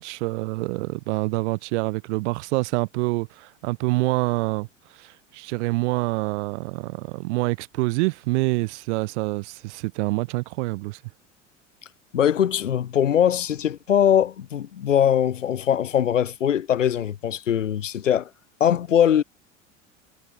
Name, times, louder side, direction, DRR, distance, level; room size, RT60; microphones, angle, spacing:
voice 1, 0.0-4.7 4.9-11.0, right 23 dB, 70° right, 1.6 m, -26 dB
voice 2, 12.1-18.3 18.6-19.2, left 9 dB, 85° left, 3.1 m, -21 dB
hypercardioid pair, 80°, 36 cm